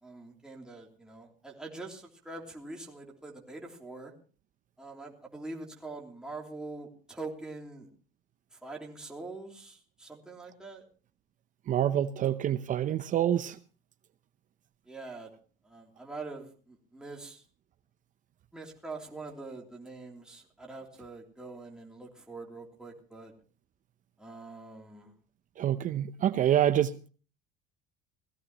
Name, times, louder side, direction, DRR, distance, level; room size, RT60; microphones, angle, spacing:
voice 1, 0.0-4.1 4.8-7.9 8.5-10.8 14.9-15.3 15.6-17.4 18.5-23.3 24.2-25.1, right 3 dB, 5° right, -1 dB, 3.1 m, -44 dB
voice 2, 11.7-13.6 25.6-27.1, right 11 dB, 40° right, 12 dB, 0.7 m, -27 dB
19.0 x 15.0 x 3.0 m, 0.38 s
supercardioid pair, 110°, 19 cm